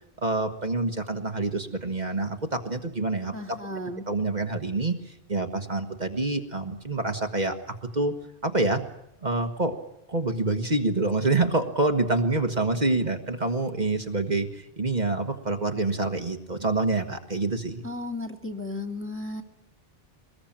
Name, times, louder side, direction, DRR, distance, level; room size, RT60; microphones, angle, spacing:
voice 1, 0.0-3.8 4.1-8.1 8.4-8.8 9.2-9.8 10.1-17.8, right 2 dB, 45° right, 5 dB, 1.5 m, -27 dB
voice 2, 3.3-4.1 17.8-19.4, left 2 dB, 10° left, 0 dB, 2.0 m, -34 dB
24.0 x 20.5 x 8.9 m, 0.82 s
omnidirectional pair, 1.0 m